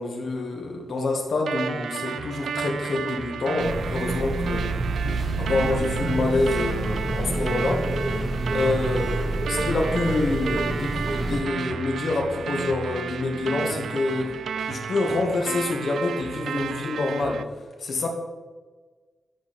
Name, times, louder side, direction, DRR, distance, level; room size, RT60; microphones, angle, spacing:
voice 1, 0.0-4.7 5.4-7.8 8.5-14.3 14.7-17.4 17.8-18.1, left 3 dB, 65° left, 1 dB, 1.5 m, -26 dB
sound 1, 1.5-17.4, right 6 dB, 80° right, 0.4 m, -32 dB
sound 2, 3.6-11.4, right 2 dB, 55° right, 2.1 m, -28 dB
sound 3, 5.0-8.8, left 5 dB, 80° left, 0.6 m, -44 dB
9.6 x 4.4 x 4.1 m, 1.3 s
cardioid pair, 90°, 0 cm